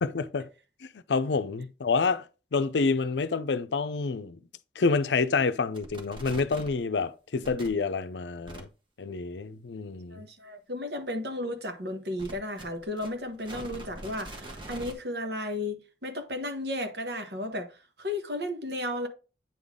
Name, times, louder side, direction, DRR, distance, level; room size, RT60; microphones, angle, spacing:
voice 1, 0.0-0.5 1.1-2.2 2.5-4.4 4.8-8.7 9.0-10.2, left 4 dB, 80° left, 0.6 m, -28 dB
sound 1, 5.7-6.8 7.4-7.7 8.5-8.6 12.2-14.9, right 1 dB, 30° right, 1.5 m, -42 dB
voice 2, 10.1-17.7 18.0-19.1, left 1 dB, 65° right, 1.3 m, -34 dB
8.9 x 3.9 x 3.6 m
head